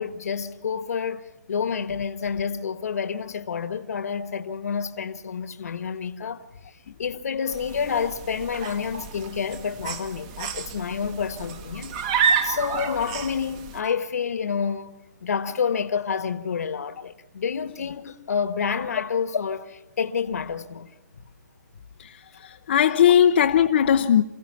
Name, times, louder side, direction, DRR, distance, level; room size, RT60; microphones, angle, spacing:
voice 1, 0.0-14.9 15.2-20.9, left 6 dB, 60° left, 1.4 m, -29 dB
sound 1, 7.5-13.8, right 6 dB, 25° right, 1.4 m, -30 dB
voice 2, 22.4-24.2, left 9 dB, 40° left, 0.8 m, -18 dB
28.5 x 16.0 x 5.8 m
hypercardioid pair, 165°, 10 cm